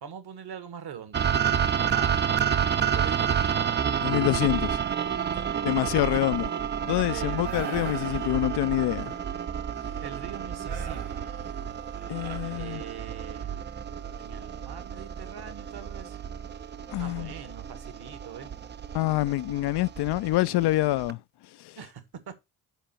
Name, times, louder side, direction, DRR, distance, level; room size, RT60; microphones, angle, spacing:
voice 1, 0.0-1.3 1.9-2.2 2.9-3.4 5.3-6.3 7.1-7.7 10.0-11.2 12.6-13.6 14.2-16.2 17.0-18.5 21.7-22.4, right 8 dB, 50° right, 1.5 m, -43 dB
sound 1, 1.1-21.1, right 8 dB, 25° right, 0.5 m, -30 dB
voice 2, 4.0-4.8 5.6-6.5 6.9-9.1 12.1-12.8 16.9-17.3 18.9-21.2, left 17 dB, 55° left, 0.5 m, -26 dB
sound 2, 7.4-9.0 10.7-13.3, right 6 dB, 75° right, 1.5 m, -43 dB
9.0 x 4.4 x 4.3 m
hypercardioid pair, 45°, 48 cm